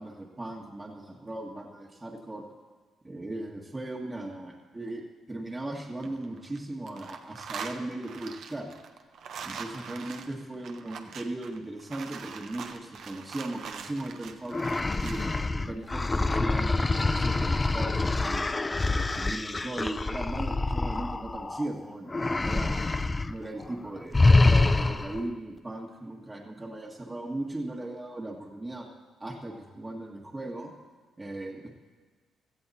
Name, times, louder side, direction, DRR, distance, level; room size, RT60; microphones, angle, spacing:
voice 1, 0.0-2.4 3.0-5.0 5.3-8.7 9.4-14.6 15.0-18.4 18.9-22.8 23.3-28.9 29.2-30.7 31.2-31.7, right 1 dB, 20° right, -1 dB, 1.5 m, -38 dB
sound 1, 5.8-6.6 6.9-15.3, right 6 dB, 70° right, 1.1 m, -42 dB
sound 2, 14.5-21.7 22.1-23.3 23.6-23.8 24.1-25.3, left 2 dB, 20° left, 0.5 m, -26 dB
16.5 x 13.5 x 4.2 m, 1.5 s
cardioid pair, 90°, 0 cm